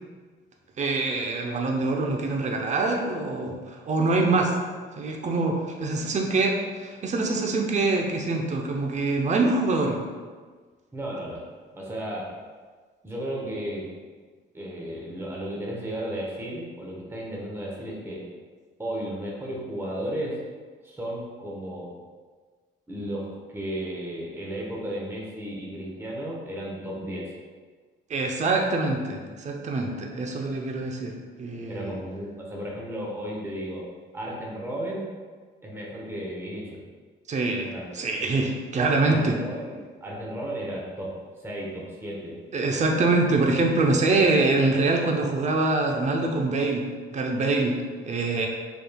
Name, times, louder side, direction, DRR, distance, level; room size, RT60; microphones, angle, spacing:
voice 1, 0.8-4.5 5.0-10.0 28.1-32.0 37.3-39.4 42.5-46.8 47.1-48.5, right 3 dB, 35° right, 1 dB, 0.6 m, -24 dB
voice 2, 10.9-11.4 11.7-12.3 13.0-13.9 14.5-18.2 18.8-20.4 20.8-21.9 22.9-27.3 31.7-33.9 34.1-35.1 35.6-36.8 37.7-37.9 39.0-42.4, right 1 dB, 10° right, -4 dB, 0.9 m, -34 dB
5.1 x 3.2 x 2.3 m, 1.5 s
cardioid pair, 90°, 20 cm